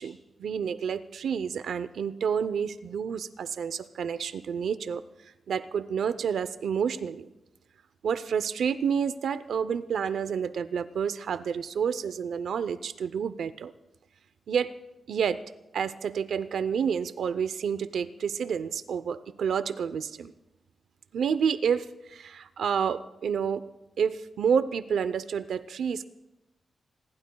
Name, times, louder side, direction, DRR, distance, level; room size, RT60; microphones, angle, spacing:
voice 1, 0.0-5.0 5.5-7.3 8.0-13.7 14.5-14.7 15.1-15.4 15.7-20.3 21.1-23.7 24.0-26.1, right 7 dB, 85° right, 13 dB, 0.7 m, -29 dB
26.5 x 21.5 x 2.3 m, 1.0 s
wide cardioid pair, 155°, 0 cm